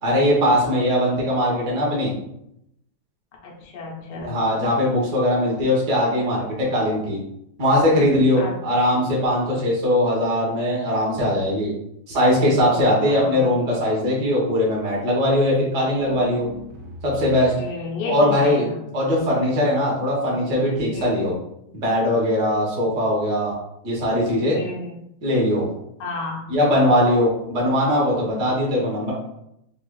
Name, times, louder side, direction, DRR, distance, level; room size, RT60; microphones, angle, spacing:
voice 1, 0.0-2.1 4.1-7.2 7.6-11.7 12.1-16.5 17.0-17.5 18.0-18.7 18.9-21.3 21.7-23.5 23.8-24.6 25.2-25.7 26.5-29.1, left 1 dB, 45° right, -4 dB, 1.2 m, -20 dB
voice 2, 3.4-4.4 8.4-8.6 13.0-13.5 17.6-18.8 20.9-21.3 24.5-25.1 26.0-26.5, left 3 dB, 65° left, -2 dB, 1.2 m, -32 dB
sound 1, 15.9-17.7, equal, 75° right, 1.1 m, -39 dB
5.6 x 2.4 x 2.3 m, 0.79 s
omnidirectional pair, 2.4 m